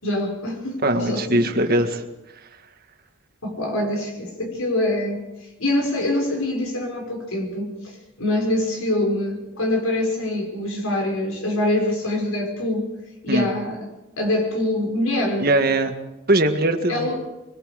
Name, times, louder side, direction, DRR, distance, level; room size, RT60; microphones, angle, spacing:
voice 1, 0.0-1.8 3.4-5.2 5.6-12.9 13.2-13.8 14.2-15.5 16.9-17.2, left 1 dB, 85° left, 2 dB, 5.7 m, -24 dB
voice 2, 0.8-2.0 13.3-13.5 15.4-15.9 16.3-17.1, right 1 dB, 45° right, 5 dB, 1.8 m, -20 dB
24.5 x 22.0 x 5.2 m, 1.0 s
head